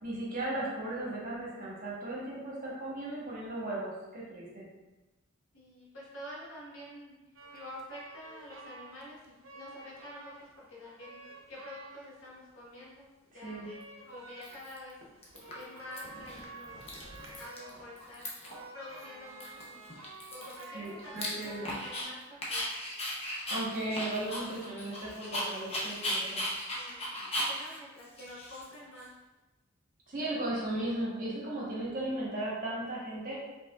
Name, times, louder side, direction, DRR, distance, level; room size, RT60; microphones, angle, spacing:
voice 1, 0.0-4.7 13.3-13.7 20.7-21.6 23.5-26.4 30.1-33.4, right 1 dB, 40° right, -5 dB, 1.2 m, -36 dB
voice 2, 5.5-7.1 7.5-11.2 11.5-13.7 14.0-15.0 15.5-17.0 17.4-18.3 18.7-19.8 20.3-22.7 26.7-27.1 27.5-29.1 30.5-30.9, left 1 dB, 70° left, -6 dB, 1.4 m, -48 dB
sound 1, 7.3-10.6 11.0-12.3 12.7-22.0, right 3 dB, 65° right, 0.7 m, -50 dB
Dog, 13.7-13.8 14.4-14.9 15.2-16.0 16.3-16.4 16.6-17.7 18.0-18.6 19.0-19.1 19.4-22.1 22.4-29.0, left 1 dB, 30° left, 0.7 m, -37 dB
5.0 x 3.3 x 2.4 m, 1.1 s
head